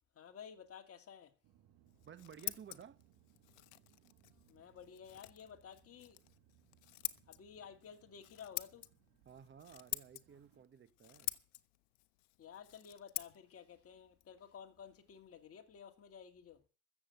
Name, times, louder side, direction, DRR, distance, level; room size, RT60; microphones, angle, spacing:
voice 1, 0.1-1.3 4.5-6.2 7.3-8.9 12.4-16.6, left 7 dB, 35° left, 2.3 m, -54 dB
sound 1, 1.4-10.6, right 11 dB, 60° right, 1.8 m, -70 dB
Scissors, 1.9-15.4, left 19 dB, 85° left, 0.8 m, -48 dB
voice 2, 2.0-3.0 9.2-11.3, right 8 dB, 30° right, 1.2 m, -55 dB
14.5 x 7.3 x 7.7 m
supercardioid pair, 105°, 40 cm